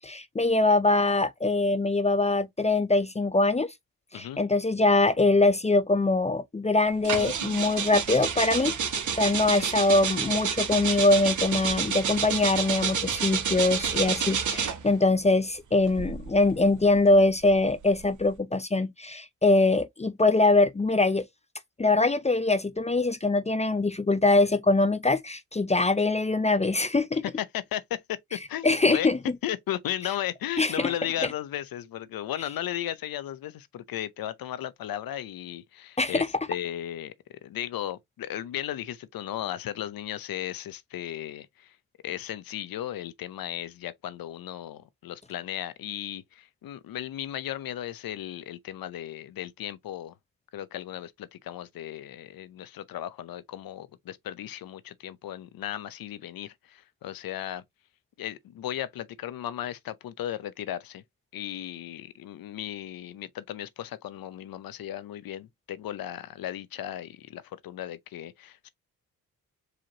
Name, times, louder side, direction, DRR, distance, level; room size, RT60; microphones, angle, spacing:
voice 1, 0.0-3.7 4.1-8.7 9.2-21.3 21.8-27.2 28.6-29.2 30.6-30.9 36.0-36.3, left 2 dB, 20° left, 0.5 m, -23 dB
sound 1, 7.0-14.9 15.8-18.3, right 7 dB, 55° right, 1.0 m, -29 dB
voice 2, 27.4-29.1 29.4-37.1 37.4-41.8 42.0-50.1 50.5-57.6 58.2-61.0 61.3-68.7, left 12 dB, 70° left, 0.7 m, -35 dB
4.9 x 2.9 x 2.9 m
cardioid pair, 60°, 36 cm